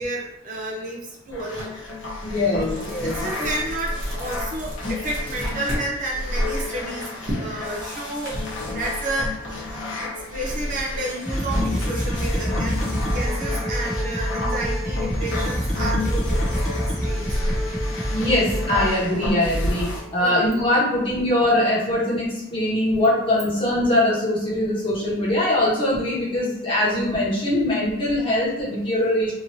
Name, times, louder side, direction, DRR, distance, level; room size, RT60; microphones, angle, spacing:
voice 1, 0.0-1.7 2.6-9.3 10.0-12.8 13.1-17.4 20.2-20.4, right 1 dB, 40° right, -2 dB, 0.5 m, -31 dB
sound 1, 1.3-20.0, left 1 dB, 70° left, 0.9 m, -30 dB
sound 2, 1.6-1.7 2.1-5.9 6.2-8.3, equal, 55° right, 1.0 m, -32 dB
voice 2, 2.2-3.1 18.1-29.3, left 1 dB, 25° left, -7 dB, 1.1 m, -22 dB
sound 3, 11.3-18.9, equal, 5° left, 0.6 m, -26 dB
2.9 x 2.6 x 2.7 m, 0.90 s
head